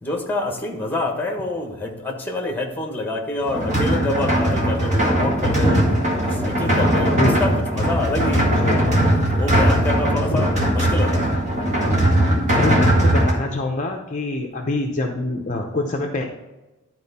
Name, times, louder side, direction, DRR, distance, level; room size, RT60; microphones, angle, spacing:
voice 1, 0.0-5.9 6.2-8.9 9.4-11.5, left 2 dB, 10° left, 1 dB, 1.3 m, -27 dB
sound 1, 3.5-13.3, right 1 dB, 35° right, 1.8 m, -19 dB
voice 2, 12.5-16.3, left 2 dB, 35° left, 2 dB, 0.7 m, -25 dB
11.5 x 4.5 x 4.2 m, 1.1 s
head